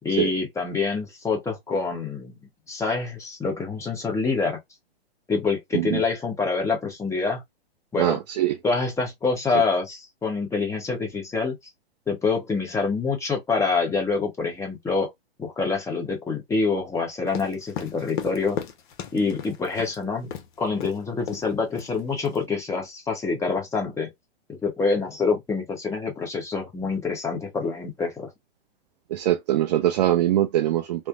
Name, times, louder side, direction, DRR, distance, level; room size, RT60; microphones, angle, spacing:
voice 1, 0.0-2.4 2.7-4.6 5.3-7.4 7.9-8.2 8.6-11.6 12.1-15.1 15.4-18.6 19.1-20.3 20.6-24.1 24.5-28.3, left 4 dB, 10° left, 0.9 m, -26 dB
voice 2, 8.0-8.6 9.5-9.6 29.1-31.1, right 13 dB, 40° right, 0.5 m, -23 dB
sound 1, 17.3-20.0 20.3-20.5 20.8-21.0 21.3-21.5 21.8-22.4, left 8 dB, 50° left, 0.7 m, -35 dB
3.3 x 2.0 x 2.4 m
hypercardioid pair, 125°, 32 cm